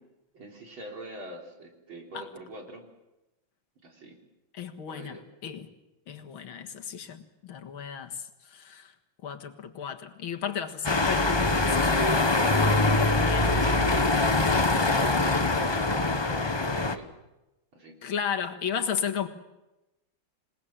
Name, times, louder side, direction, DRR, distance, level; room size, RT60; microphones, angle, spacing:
voice 1, 0.3-2.8 3.8-4.2 4.9-5.2 14.5-17.1 17.7-17.9, right 1 dB, 80° right, 1 dB, 4.5 m, -43 dB
voice 2, 4.5-5.7 6.1-8.1 8.5-8.9 9.2-13.5 15.5-15.6 18.0-19.3, left 7 dB, 85° left, 6 dB, 2.4 m, -34 dB
sound 1, 10.8-17.0, left 2 dB, 25° left, 0.6 m, -23 dB
27.5 x 19.0 x 7.5 m, 0.98 s
omnidirectional pair, 2.2 m